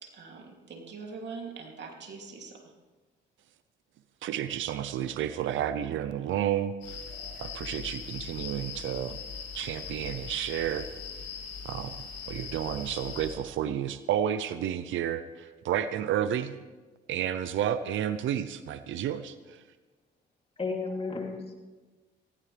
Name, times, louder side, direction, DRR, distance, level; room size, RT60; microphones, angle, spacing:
voice 1, 0.0-2.7, right 4 dB, 60° right, 1 dB, 2.8 m, -43 dB
voice 2, 4.2-7.0 7.4-9.2 9.5-10.9 11.6-12.0 12.3-16.6 17.1-19.6, right 10 dB, 75° right, 11 dB, 0.7 m, -31 dB
sound 1, 6.8-13.3, left 6 dB, 75° left, 5.5 m, -40 dB
voice 3, 20.6-21.5, left 4 dB, 30° left, 1 dB, 3.0 m, -33 dB
18.5 x 16.5 x 3.4 m, 1.3 s
cardioid pair, 90°, 20 cm